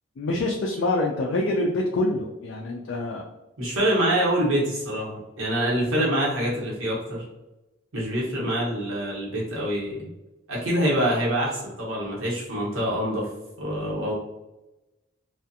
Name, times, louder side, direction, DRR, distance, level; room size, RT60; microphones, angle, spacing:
voice 1, 0.2-3.2, left 2 dB, 60° left, 0 dB, 0.3 m, -26 dB
voice 2, 3.6-7.2 7.9-10.1 10.5-13.3 13.6-14.1, right 1 dB, 85° right, -5 dB, 1.0 m, -25 dB
2.4 x 2.4 x 2.6 m, 1.0 s
head